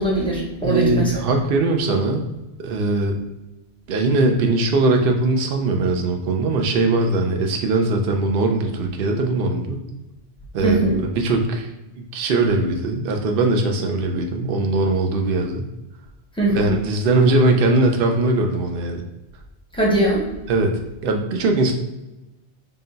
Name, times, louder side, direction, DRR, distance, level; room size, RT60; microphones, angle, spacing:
voice 1, 0.0-1.1 10.6-11.0 16.3-16.7 19.7-20.2, right 1 dB, 5° left, -4 dB, 0.7 m, -20 dB
voice 2, 0.6-2.3 2.6-3.2 3.9-9.8 10.5-11.7 12.1-15.7 16.6-19.0 20.5-21.7, right 2 dB, 60° right, 3 dB, 0.7 m, -20 dB
3.8 x 2.2 x 3.8 m, 1.0 s
omnidirectional pair, 1.1 m